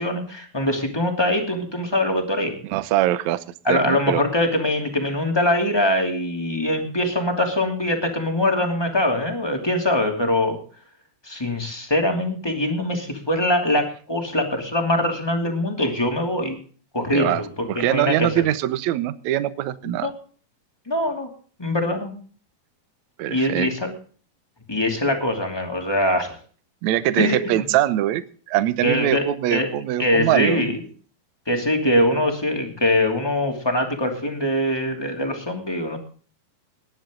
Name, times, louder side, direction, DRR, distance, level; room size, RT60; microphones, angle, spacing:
voice 1, 0.0-2.5 3.6-10.6 11.2-16.6 16.9-18.3 20.0-20.1 20.9-21.3 21.6-22.1 23.3-23.9 24.7-26.4 27.2-27.6 28.8-29.7 30.0-30.8 31.5-36.0, left 1 dB, 10° left, 3 dB, 2.1 m, -23 dB
voice 2, 2.7-4.2 17.1-17.4 17.7-20.1 23.2-23.7 26.8-28.2 28.5-30.7, right 13 dB, 70° right, 13 dB, 1.8 m, -23 dB
19.5 x 10.5 x 3.8 m, 0.42 s
omnidirectional pair, 4.3 m